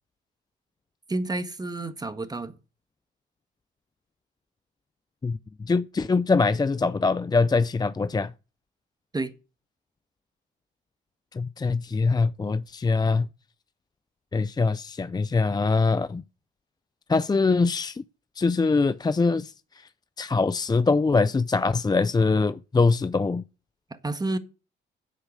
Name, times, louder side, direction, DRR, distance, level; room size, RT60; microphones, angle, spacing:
voice 1, 1.1-2.5 9.1-9.3 24.0-24.4, right 2 dB, 20° right, 1.6 m, -29 dB
voice 2, 5.2-8.3 11.3-13.3 14.3-16.2 17.1-18.0 18.4-19.9 20.2-23.4, left 4 dB, 20° left, 0.5 m, -23 dB
9.8 x 8.2 x 6.5 m
cardioid pair, 90°, 20 cm